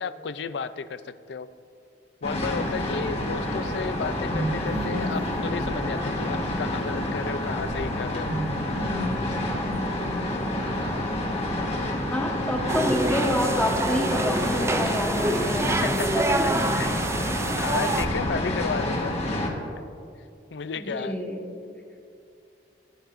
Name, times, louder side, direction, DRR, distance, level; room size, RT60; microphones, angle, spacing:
voice 1, 0.0-1.5 2.2-8.3 14.9-15.0 15.8-17.0 17.6-19.2 20.5-21.2, left 5 dB, 70° left, 14 dB, 0.4 m, -33 dB
sound 1, 2.2-19.5, left 1 dB, 35° left, 1.4 m, -28 dB
sound 2, 4.3-6.9 8.3-10.7, right 1 dB, 65° right, 1.1 m, -34 dB
voice 2, 10.4-11.0 12.1-16.4 20.8-21.5, left 1 dB, 10° left, 0 dB, 1.2 m, -28 dB
sound 3, 12.7-18.0, right 2 dB, 15° right, 0.3 m, -27 dB
18.0 x 9.1 x 2.6 m, 2.4 s
head